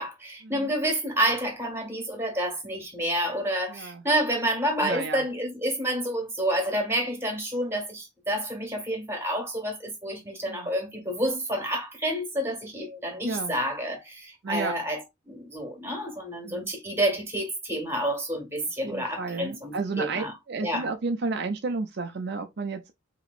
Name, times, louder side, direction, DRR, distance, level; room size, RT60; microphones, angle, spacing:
voice 1, 0.0-15.0 15.3-20.3 20.6-20.9, right 1 dB, 10° right, 1.6 m, -29 dB
voice 2, 3.7-4.0 4.8-5.3 10.5-10.7 13.2-13.5 14.4-14.8 16.4-16.7 18.8-22.9, right 4 dB, 55° right, 0.6 m, -32 dB
4.9 x 3.0 x 2.3 m
head